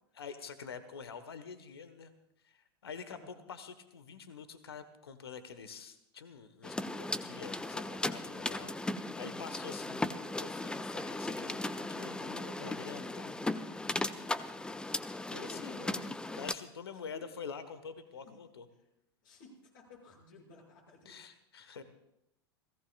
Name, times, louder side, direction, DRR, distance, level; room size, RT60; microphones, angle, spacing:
voice 1, 0.2-2.1 2.4-10.1 10.4-13.3 15.3-15.9 16.3-18.6 21.0-21.8, left 6 dB, 75° left, 12 dB, 1.4 m, -47 dB
voice 2, 3.0-3.4 14.2-14.5 15.4-16.1 16.4-16.7 17.1-17.2 18.2-18.4 18.7-18.9 19.2-21.2, left 4 dB, 55° left, 0 dB, 6.7 m, -56 dB
sound 1, 6.6-16.5, left 2 dB, 5° left, 0.6 m, -37 dB
30.0 x 17.0 x 2.4 m, 0.81 s
figure-of-eight pair, 90°, 13 cm